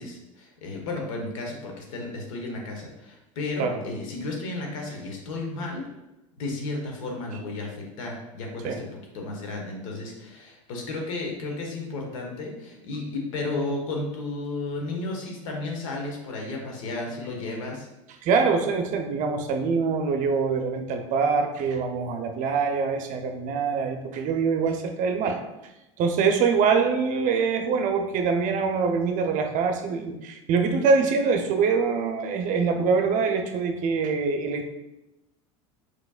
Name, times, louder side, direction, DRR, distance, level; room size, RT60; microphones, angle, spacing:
voice 1, 0.0-5.8 6.4-17.9, left 2 dB, 75° left, 0 dB, 1.3 m, -33 dB
voice 2, 18.2-25.4 26.0-34.7, right 5 dB, 50° right, 5 dB, 0.7 m, -24 dB
4.7 x 4.4 x 2.4 m, 0.96 s
hypercardioid pair, 90°, 17 cm